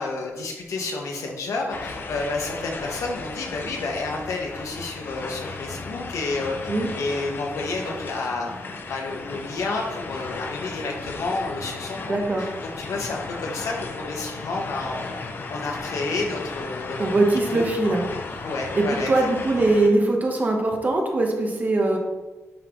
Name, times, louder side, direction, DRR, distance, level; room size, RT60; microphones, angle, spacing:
voice 1, 0.0-6.7 7.0-15.2 15.5-17.0 17.5-17.6 18.4-19.1, left 3 dB, 80° left, 0 dB, 1.2 m, -30 dB
sound 1, 1.7-19.9, left 3 dB, 40° left, 0.6 m, -35 dB
voice 2, 12.0-12.4 16.9-18.1 18.3-18.4 18.7-22.0, right 2 dB, 35° right, 2 dB, 0.9 m, -22 dB
10.0 x 3.8 x 3.0 m, 1.2 s
wide cardioid pair, 160°, 5 cm